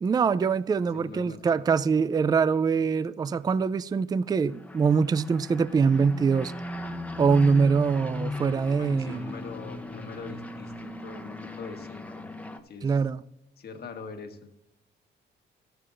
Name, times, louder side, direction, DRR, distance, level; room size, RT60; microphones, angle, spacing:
voice 1, 0.0-6.5 7.2-9.3 12.8-13.2, right 5 dB, 20° right, 0.3 m, -24 dB
voice 2, 0.8-1.6 8.8-12.3 12.6-13.0 13.6-14.5, left 4 dB, 55° left, 1.4 m, -42 dB
sound 1, 4.4-12.6, left 1 dB, 5° left, 0.9 m, -38 dB
14.0 x 11.0 x 2.5 m
cardioid pair, 90°, 20 cm